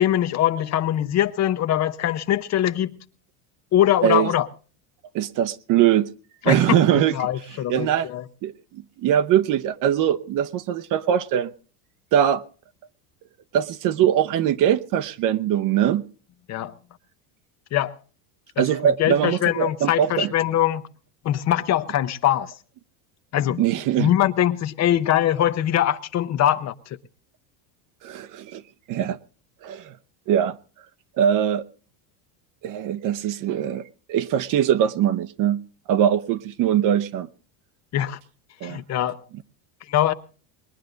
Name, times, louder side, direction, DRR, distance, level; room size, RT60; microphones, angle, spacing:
voice 1, 0.0-2.9 3.7-4.5 6.4-8.2 16.5-16.7 17.7-18.0 18.6-20.8 21.2-22.5 23.3-23.6 24.0-27.0 37.9-38.2 38.6-39.2 39.9-40.1, left 12 dB, 35° left, 0.8 m, -22 dB
voice 2, 5.1-6.1 6.5-7.1 7.7-8.1 8.4-11.5 12.1-12.4 13.5-16.0 18.6-20.3 23.6-24.1 28.0-28.6 28.9-29.2 29.6-29.9 30.3-30.6 31.2-31.6 32.6-33.8 34.1-35.6 35.9-37.3 38.6-38.8, right 10 dB, 40° right, 0.8 m, -21 dB
21.0 x 11.0 x 3.9 m
cardioid pair, 145°, 48 cm